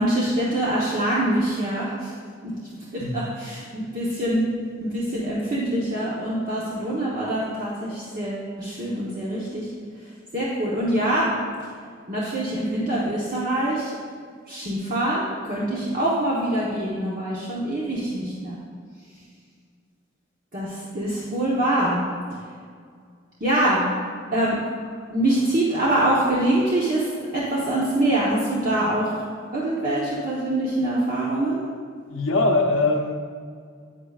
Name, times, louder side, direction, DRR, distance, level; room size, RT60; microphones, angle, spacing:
voice 1, 0.0-2.1 2.4-2.5 2.9-4.5 4.8-9.7 10.3-11.3 12.1-13.9 14.5-18.6 20.5-22.0 23.4-23.9 24.3-24.6 25.1-29.2 29.5-31.6, right 1 dB, 45° right, -7 dB, 1.1 m, -24 dB
voice 2, 32.1-33.1, left 2 dB, 80° left, 1 dB, 0.7 m, -21 dB
9.0 x 8.7 x 2.4 m, 2.1 s
head